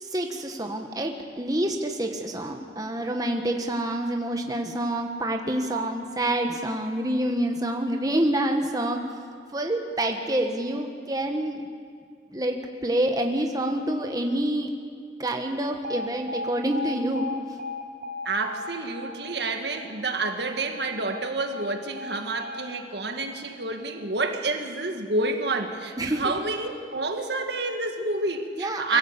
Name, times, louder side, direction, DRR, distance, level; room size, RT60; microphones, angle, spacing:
voice 1, 0.0-9.0 9.5-11.6 12.3-14.7 15.2-17.3 26.0-26.2 28.6-29.0, right 1 dB, 20° right, 3 dB, 1.3 m, -27 dB
Alarm, 15.8-23.9, left 2 dB, 50° right, 1.5 m, -38 dB
voice 2, 18.3-29.0, right 2 dB, 65° right, 5 dB, 1.8 m, -29 dB
24.0 x 15.5 x 8.2 m, 2.1 s
head